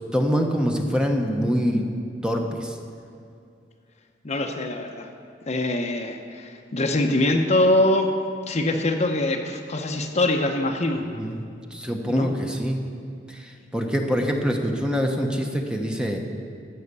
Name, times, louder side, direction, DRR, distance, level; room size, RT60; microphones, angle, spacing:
voice 1, 0.1-1.9 2.2-2.7 11.2-11.4 11.7-12.8 13.3-16.2, equal, 5° right, 2 dB, 0.9 m, -25 dB
voice 2, 4.2-5.1 5.5-8.1 8.5-11.0 12.0-12.3, left 1 dB, 40° left, 4 dB, 0.8 m, -23 dB
14.0 x 5.7 x 8.2 m, 2.4 s
head